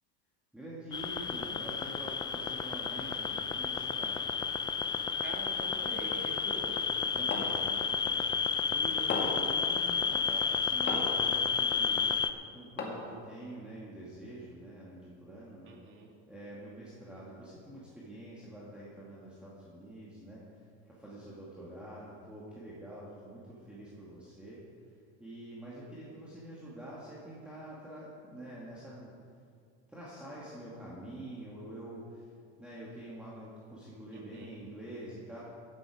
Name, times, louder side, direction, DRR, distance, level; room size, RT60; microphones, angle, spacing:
voice 1, 0.5-4.2 7.0-12.1 12.5-15.8 16.3-29.1 29.9-32.3 32.6-35.4, right 1 dB, 5° right, -8 dB, 2.2 m, -46 dB
sound 1, 0.9-12.3, left 6 dB, 15° left, 0.3 m, -31 dB
voice 2, 5.2-6.8 15.6-16.1 34.1-34.5, right 2 dB, 35° right, 0 dB, 2.5 m, -45 dB
sound 2, 7.3-7.6 9.1-9.5 10.9-11.2 12.8-13.2, left 3 dB, 30° left, 2.2 m, -35 dB
15.0 x 11.0 x 5.0 m, 2.3 s
supercardioid pair, 140°, 33 cm